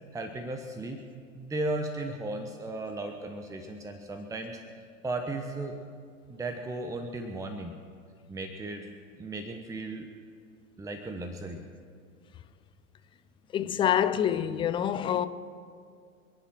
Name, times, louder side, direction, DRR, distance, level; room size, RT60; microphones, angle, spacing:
voice 1, 0.1-1.0 1.3-5.8 6.3-7.7 8.3-8.9 9.1-10.1 10.8-11.6, right 2 dB, 10° right, 1.0 m, -36 dB
voice 2, 13.5-15.3, left 9 dB, 15° left, 0.5 m, -26 dB
27.0 x 10.0 x 4.5 m
figure-of-eight pair, 95°, 41 cm